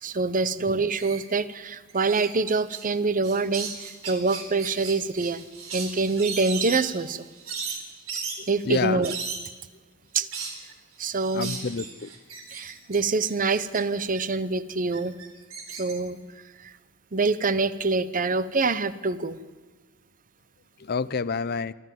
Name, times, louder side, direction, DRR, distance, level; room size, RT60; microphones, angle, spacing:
voice 1, 0.0-5.4 5.7-7.3 8.5-9.1 10.1-10.3 11.0-11.5 12.5-15.1 15.7-16.2 16.6-16.7 17.1-19.4, right 3 dB, 40° right, 15 dB, 0.9 m, -25 dB
sound 1, 1.0-1.2 1.9-2.9 3.2-9.5 10.3-10.6 11.1-13.8 14.1-14.2 14.9-15.9, right 5 dB, 75° right, 3.9 m, -36 dB
voice 2, 8.4-9.0 11.3-12.1 20.8-21.7, left 5 dB, 50° left, 17 dB, 0.6 m, -29 dB
24.0 x 14.5 x 7.6 m, 1.3 s
head